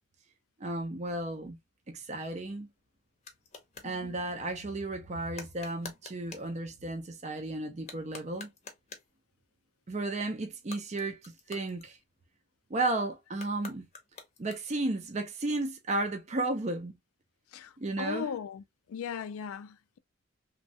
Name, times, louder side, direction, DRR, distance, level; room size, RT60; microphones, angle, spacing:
voice 1, 0.6-1.6 1.9-2.7 3.8-8.5 9.9-12.0 12.7-13.9 14.4-17.0 17.8-18.3, right 2 dB, 30° right, 0.5 m, -33 dB
sound 1, 2.3-4.0 5.3-6.5 7.7-9.2 10.5-12.4 13.3-14.9, left 4 dB, 30° left, 0.7 m, -49 dB
voice 2, 3.8-4.2 17.5-18.6 18.9-20.0, left 7 dB, 85° left, 0.3 m, -38 dB
3.1 x 2.3 x 2.7 m
head